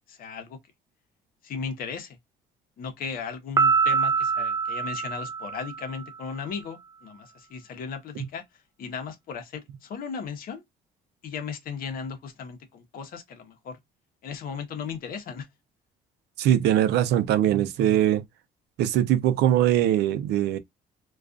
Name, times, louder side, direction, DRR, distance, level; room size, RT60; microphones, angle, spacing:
voice 1, 0.1-0.6 1.4-2.2 2.8-8.4 8.8-10.6 11.2-13.8 14.2-15.5, left 6 dB, 60° left, 0.8 m, -36 dB
Piano, 3.6-6.1, right 5 dB, 20° right, 0.4 m, -25 dB
voice 2, 16.4-18.2 18.8-20.6, right 11 dB, 80° right, 0.5 m, -21 dB
2.3 x 2.3 x 2.3 m
cardioid pair, 110°, 17 cm